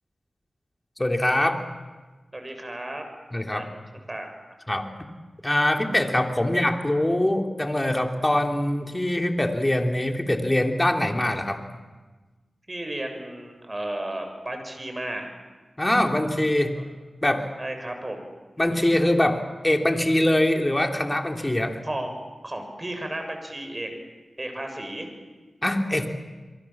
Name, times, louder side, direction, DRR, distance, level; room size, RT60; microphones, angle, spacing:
voice 1, 1.0-1.6 3.3-3.7 4.7-4.9 5.4-11.6 15.8-16.8 17.2-17.5 18.6-21.8 25.6-26.1, left 1 dB, 20° left, 4 dB, 3.5 m, -23 dB
voice 2, 2.3-3.0 3.5-3.7 4.1-4.6 12.7-15.3 16.7-16.9 17.6-18.2 21.8-22.1 22.4-23.9 24.4-25.1, right 1 dB, 30° right, 5 dB, 6.9 m, -33 dB
29.0 x 23.0 x 7.4 m, 1.3 s
cardioid pair, 40°, 0 cm